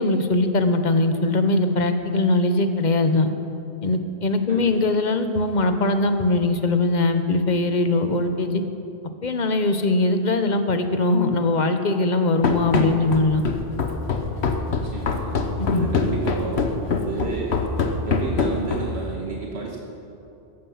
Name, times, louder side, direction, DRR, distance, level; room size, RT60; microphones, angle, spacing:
voice 1, 0.0-3.3 3.8-8.6 9.2-13.4 15.6-15.9, left 2 dB, 45° left, 8 dB, 1.1 m, -21 dB
Run, 12.4-19.1, left 4 dB, 80° left, 1.3 m, -24 dB
voice 2, 14.7-15.3 15.7-16.7 17.0-17.6 18.1-19.8, right 4 dB, 75° right, -1 dB, 1.6 m, -31 dB
14.5 x 14.5 x 5.7 m, 2.7 s
omnidirectional pair, 1.1 m